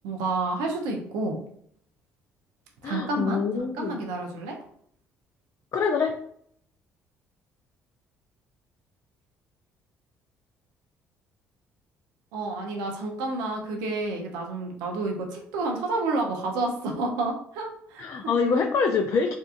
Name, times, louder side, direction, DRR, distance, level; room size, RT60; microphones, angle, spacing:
voice 1, 0.0-1.4 2.8-4.6 12.3-18.3, right 2 dB, 80° right, 1 dB, 0.6 m, -30 dB
voice 2, 2.8-4.0 5.7-6.1 18.0-19.3, left 5 dB, 50° left, 3 dB, 0.4 m, -25 dB
2.7 x 2.3 x 2.4 m, 0.65 s
hypercardioid pair, 60°, 6 cm